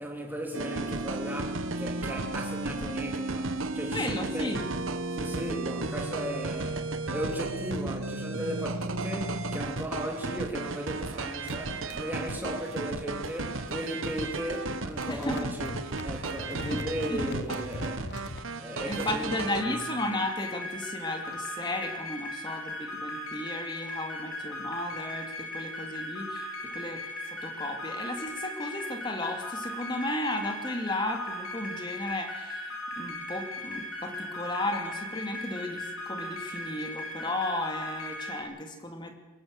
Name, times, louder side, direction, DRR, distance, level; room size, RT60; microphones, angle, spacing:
voice 1, 0.0-4.5 5.1-18.3 18.6-19.8, equal, 10° right, 3.2 m, -36 dB
sound 1, 0.5-19.6, right 3 dB, 65° right, 1.3 m, -34 dB
voice 2, 3.9-4.6 15.1-15.5 16.5-17.6 18.9-39.1, left 1 dB, 20° left, 2.5 m, -34 dB
sound 2, 11.4-14.1 14.4-18.5, left 2 dB, 50° left, 0.9 m, -43 dB
sound 3, 19.6-38.4, left 1 dB, 80° left, 5.3 m, -38 dB
24.0 x 21.0 x 6.6 m
head